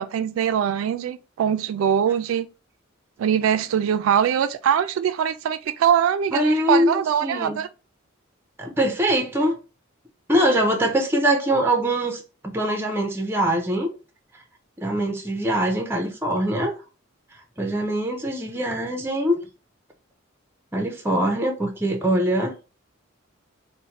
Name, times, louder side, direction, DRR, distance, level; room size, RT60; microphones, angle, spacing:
voice 1, 0.0-2.5 3.2-7.7, right 8 dB, 80° right, 0.3 m, -22 dB
voice 2, 6.3-7.6 8.6-9.6 10.3-13.9 14.8-16.7 17.6-19.4 20.7-22.5, right 1 dB, 10° right, 0.5 m, -23 dB
4.1 x 2.1 x 2.8 m
head